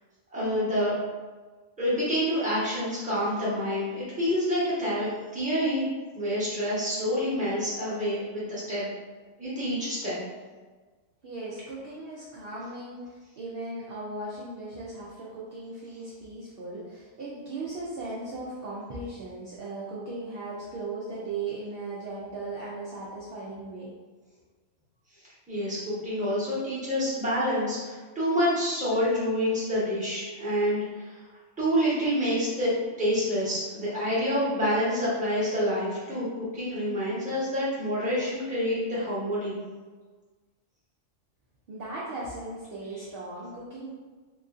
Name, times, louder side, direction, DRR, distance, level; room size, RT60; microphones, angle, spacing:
voice 1, 0.3-0.9 1.8-5.8 6.1-8.8 9.4-10.2 25.5-31.2 31.6-36.3 36.5-39.5, equal, 5° right, -10 dB, 0.9 m, -27 dB
voice 2, 11.2-23.9 41.7-43.9, right 2 dB, 60° right, -7 dB, 0.6 m, -37 dB
2.9 x 2.5 x 2.4 m, 1.4 s
omnidirectional pair, 1.3 m